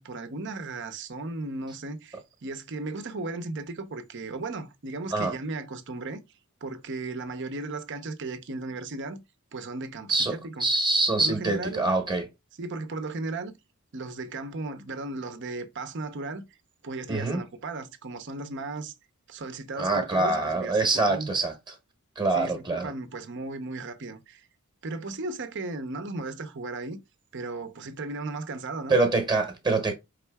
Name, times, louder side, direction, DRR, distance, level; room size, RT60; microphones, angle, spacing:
voice 1, 0.0-6.2 6.6-9.2 9.5-10.7 11.2-11.9 12.6-13.5 13.9-16.4 16.8-18.9 19.3-21.4 22.3-24.5 24.8-27.0 27.3-29.0, right 3 dB, 55° right, 0.7 m, -36 dB
voice 2, 10.1-12.3 17.1-17.4 19.8-21.5 22.2-22.9 28.9-29.9, right 3 dB, 20° right, 1.0 m, -25 dB
4.5 x 3.7 x 2.2 m
head